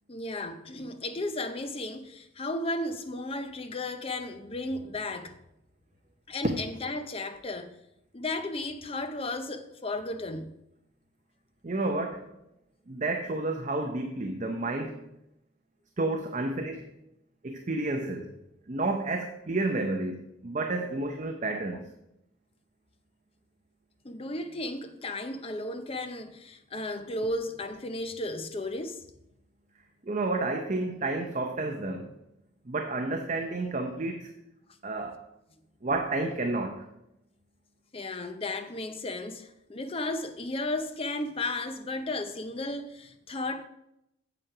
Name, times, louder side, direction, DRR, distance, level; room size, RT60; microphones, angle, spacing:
voice 1, 0.1-5.4 6.3-7.7 8.1-10.6 21.7-21.8 24.0-29.0 37.9-43.6, left 2 dB, 30° left, 0.6 m, -34 dB
voice 2, 11.6-12.3 12.9-15.0 16.0-16.9 17.4-18.3 18.7-21.8 30.0-32.1 32.7-34.3 34.8-35.2 35.8-36.9, right 2 dB, 35° right, 0.6 m, -30 dB
8.1 x 7.3 x 4.8 m
head